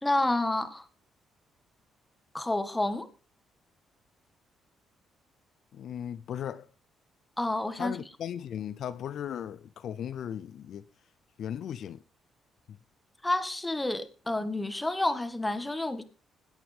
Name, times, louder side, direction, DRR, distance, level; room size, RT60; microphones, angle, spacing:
voice 1, 0.0-0.9 2.3-3.1 7.4-8.0 13.2-16.0, left 2 dB, 10° left, 1.8 m, -29 dB
voice 2, 5.7-6.7 7.7-10.9 11.4-12.0, left 9 dB, 70° left, 0.6 m, -37 dB
21.0 x 9.0 x 3.6 m
cardioid pair, 90°, 0 cm